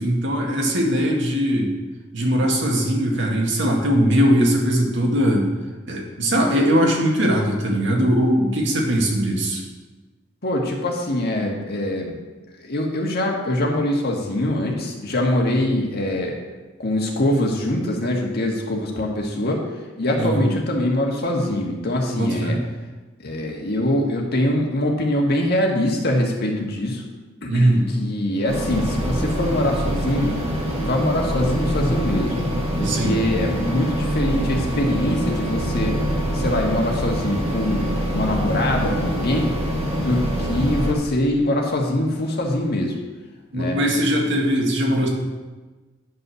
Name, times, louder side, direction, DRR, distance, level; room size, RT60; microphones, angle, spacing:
voice 1, 0.0-1.7 2.1-5.5 5.9-9.6 20.2-20.5 22.1-22.6 27.5-27.9 32.8-33.2 43.5-45.1, equal, 65° right, 0 dB, 2.0 m, -20 dB
voice 2, 10.4-12.2 12.6-16.4 16.8-19.6 20.0-22.6 23.2-27.0 27.4-30.4 30.8-32.4 32.8-36.0 36.3-37.9 38.1-39.5 40.0-43.0 43.5-43.8, left 1 dB, 55° left, 0 dB, 1.6 m, -23 dB
sound 1, 28.5-40.9, equal, 35° right, 1.8 m, -25 dB
9.9 x 5.5 x 6.4 m, 1.3 s
head